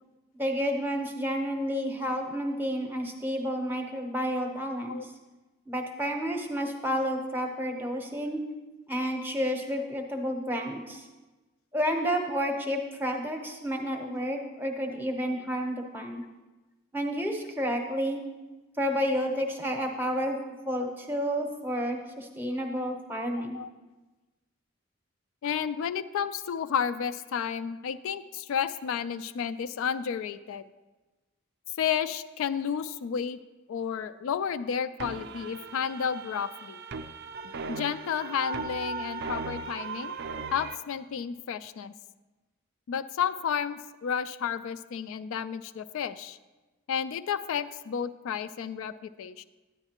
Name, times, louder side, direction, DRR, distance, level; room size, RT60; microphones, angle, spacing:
voice 1, 0.4-5.1 5.7-8.4 8.9-11.1 11.7-16.2 16.9-18.2 18.8-20.4 20.6-23.6, equal, 10° right, 3 dB, 0.7 m, -30 dB
voice 2, 25.4-30.6 31.8-33.4 33.7-36.8 37.7-40.1 40.5-41.9 42.9-46.4 46.9-49.4, left 7 dB, 70° left, 12 dB, 0.3 m, -31 dB
sound 1, 35.0-40.8, right 4 dB, 50° right, 0.4 m, -37 dB
9.8 x 9.7 x 2.9 m, 1.2 s
head